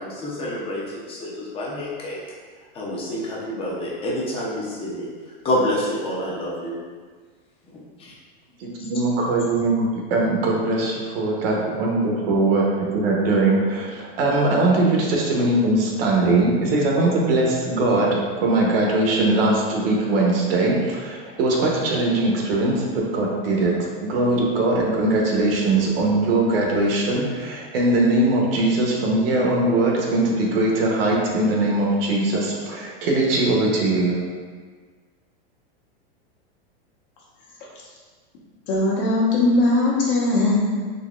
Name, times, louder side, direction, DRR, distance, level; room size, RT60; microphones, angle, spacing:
voice 1, 0.0-2.2 2.7-6.8 7.7-8.1 9.4-9.5, left 1 dB, 20° left, -4 dB, 0.6 m, -28 dB
voice 2, 8.6-34.2, right 2 dB, 70° right, -2 dB, 0.9 m, -21 dB
voice 3, 38.7-40.7, left 2 dB, 60° left, -5 dB, 1.1 m, -19 dB
3.9 x 2.9 x 2.4 m, 1.5 s
supercardioid pair, 150°, 30 cm